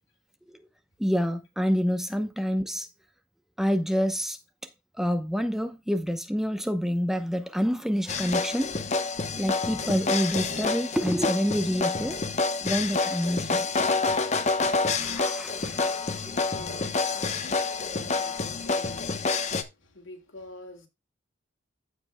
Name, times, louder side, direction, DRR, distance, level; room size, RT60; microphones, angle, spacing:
voice 1, 1.0-2.9 3.6-4.4 5.0-8.8 9.4-12.2 12.6-13.7 15.0-16.4, equal, ahead, 0.7 m, -27 dB
sound 1, 8.1-19.6, left 4 dB, 35° left, 0.9 m, -28 dB
voice 2, 16.1-20.9, left 1 dB, 85° left, 2.3 m, -47 dB
15.0 x 5.2 x 2.2 m
head